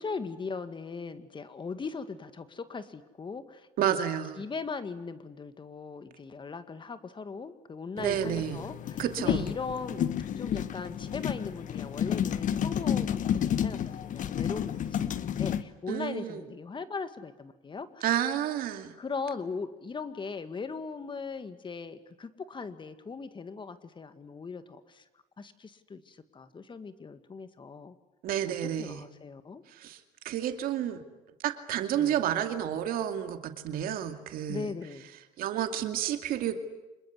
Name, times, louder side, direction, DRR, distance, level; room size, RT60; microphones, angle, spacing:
voice 1, 0.0-3.7 4.4-10.1 10.4-18.1 19.0-25.0 25.4-28.0 28.5-29.6 31.9-32.2 34.5-35.1, left 4 dB, 30° left, 11 dB, 2.0 m, -39 dB
voice 2, 3.8-4.4 8.0-8.6 9.0-9.5 15.9-16.4 18.0-18.9 28.2-29.0 29.7-30.0 30.2-31.0 31.4-34.7 35.4-36.6, right 10 dB, 70° right, 7 dB, 2.4 m, -30 dB
sound 1, 8.0-15.6, left 9 dB, 55° left, 1.3 m, -31 dB
26.0 x 21.5 x 9.6 m, 1.0 s
supercardioid pair, 85°, 15 cm